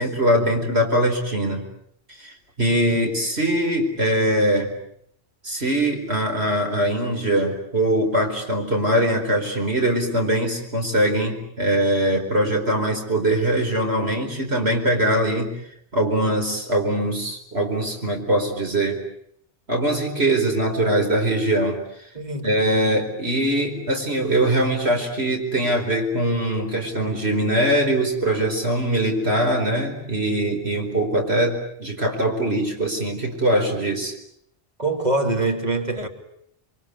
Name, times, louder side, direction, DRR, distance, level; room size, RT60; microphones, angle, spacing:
voice 1, 0.0-1.6 2.2-4.7 5.4-15.5 15.9-19.0 19.7-21.8 22.4-34.1, right 1 dB, 65° right, 4.9 m, -22 dB
voice 2, 22.1-22.5 34.8-36.1, right 2 dB, 40° right, 3.2 m, -23 dB
29.5 x 23.0 x 8.4 m
omnidirectional pair, 1.2 m